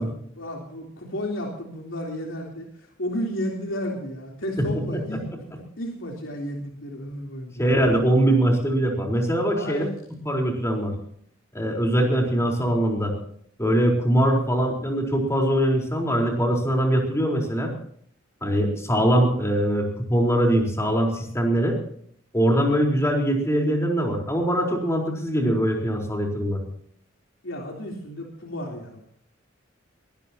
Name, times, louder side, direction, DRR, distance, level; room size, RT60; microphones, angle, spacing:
voice 1, 0.0-7.6 9.4-9.9 27.4-29.0, equal, 75° left, 0 dB, 3.6 m, -33 dB
voice 2, 7.6-9.8 10.2-10.9 11.5-13.1 13.6-17.7 18.4-21.8 22.3-26.6, right 1 dB, 15° left, 1 dB, 4.2 m, -22 dB
22.5 x 18.5 x 2.9 m, 0.63 s
head